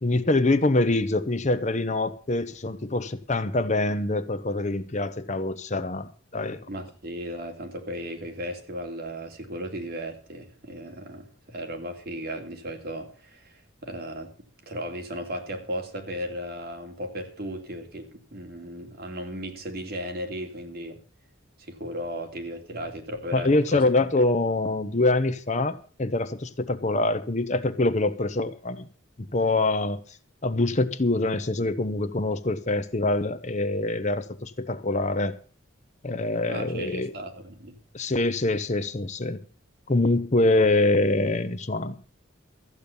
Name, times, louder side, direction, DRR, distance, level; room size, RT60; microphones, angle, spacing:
voice 1, 0.0-6.6 23.3-28.9 29.2-30.0 30.4-35.3 36.0-37.1 37.9-39.4 39.9-42.0, left 2 dB, 35° left, 0.9 m, -25 dB
voice 2, 6.7-14.3 14.7-21.0 21.6-23.9 36.5-37.8, equal, 50° right, 2.7 m, -36 dB
14.0 x 8.6 x 7.0 m
head